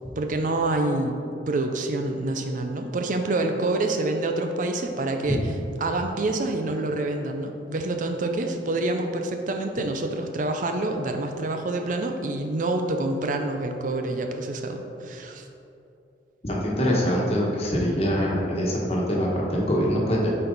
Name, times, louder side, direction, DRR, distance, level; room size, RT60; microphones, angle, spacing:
voice 1, 0.2-1.2 1.5-5.5 5.8-15.4, right 2 dB, 45° right, 4 dB, 0.5 m, -27 dB
voice 2, 16.4-20.3, equal, 35° left, -3 dB, 1.3 m, -24 dB
8.8 x 4.5 x 4.0 m, 2.7 s
head